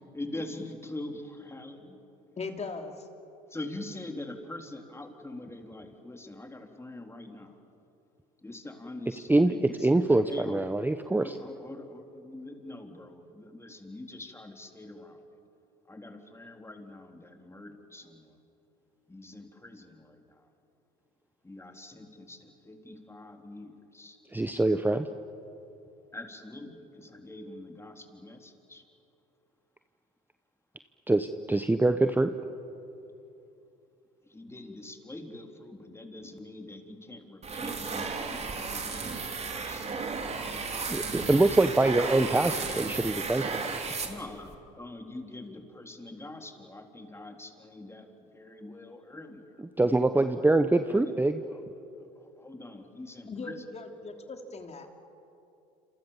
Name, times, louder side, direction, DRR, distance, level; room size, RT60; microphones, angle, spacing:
voice 1, 0.1-2.0 3.5-7.6 8.4-10.6 11.2-15.4 15.9-18.4 19.1-20.5 21.4-24.2 26.1-28.8 34.3-39.8 44.0-50.3 50.9-51.2 51.5-53.6, left 2 dB, 10° left, 4 dB, 3.6 m, -44 dB
voice 2, 2.4-2.9 53.3-55.0, left 4 dB, 30° left, 5 dB, 3.2 m, -39 dB
voice 3, 9.8-11.3 24.3-25.1 31.1-32.3 40.9-43.8 49.8-51.4, right 2 dB, 10° right, 9 dB, 1.0 m, -24 dB
sound 1, 37.4-44.6, right 4 dB, 30° right, 3.3 m, -34 dB
27.5 x 27.0 x 7.4 m, 2.8 s
hypercardioid pair, 75°, 21 cm